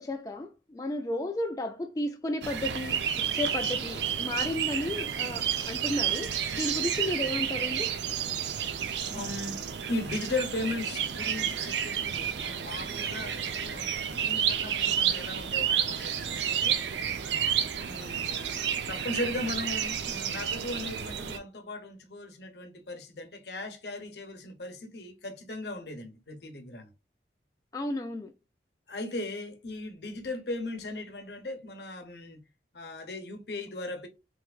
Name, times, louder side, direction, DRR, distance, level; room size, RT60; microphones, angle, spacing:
voice 1, 0.0-7.9 27.7-28.3, left 1 dB, 20° left, 0.3 m, -33 dB
sound 1, 2.4-21.4, right 8 dB, 80° right, 0.5 m, -31 dB
voice 2, 9.1-9.6 9.9-16.8 17.9-18.6 18.9-26.9 28.9-32.4 32.7-34.1, left 2 dB, 70° left, 0.9 m, -37 dB
3.4 x 3.1 x 2.3 m
head